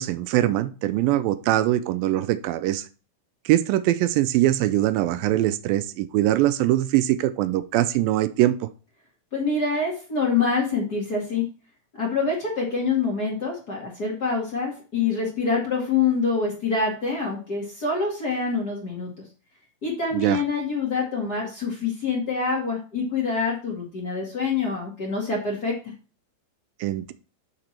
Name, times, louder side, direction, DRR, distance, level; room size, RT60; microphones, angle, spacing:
voice 1, 0.0-2.9 3.5-8.7 20.1-20.4 26.8-27.1, right 14 dB, 80° right, 12 dB, 2.3 m, -22 dB
voice 2, 9.3-11.4 12.0-19.1 19.8-25.7, left 4 dB, 35° left, -3 dB, 1.9 m, -26 dB
7.8 x 6.0 x 4.3 m, 0.35 s
omnidirectional pair, 4.1 m